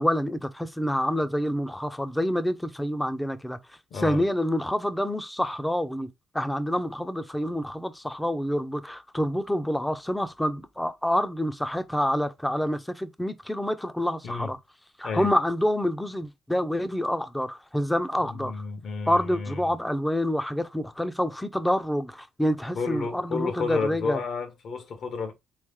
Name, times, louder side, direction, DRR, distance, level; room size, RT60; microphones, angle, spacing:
voice 1, 0.0-3.6 3.9-6.1 6.3-14.6 15.0-18.6 19.1-24.2, equal, 5° left, 0.6 m, -27 dB
voice 2, 3.9-4.2 14.2-14.5 15.0-15.3 18.3-19.7 22.7-25.3, left 4 dB, 65° left, 1.3 m, -31 dB
3.8 x 3.2 x 3.6 m
cardioid pair, 90°, 0 cm